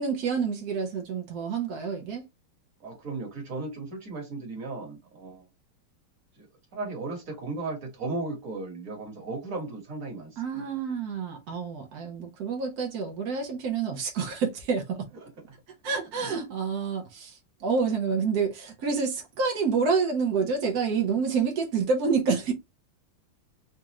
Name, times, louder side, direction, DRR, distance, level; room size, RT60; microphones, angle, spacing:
voice 1, 0.0-2.2 10.4-15.1 15.8-22.5, right 5 dB, 75° right, 0.8 m, -28 dB
voice 2, 2.8-5.4 6.4-10.6 15.2-15.3 16.2-16.3, right 3 dB, 45° right, 1.4 m, -36 dB
4.1 x 2.4 x 2.8 m
omnidirectional pair, 2.4 m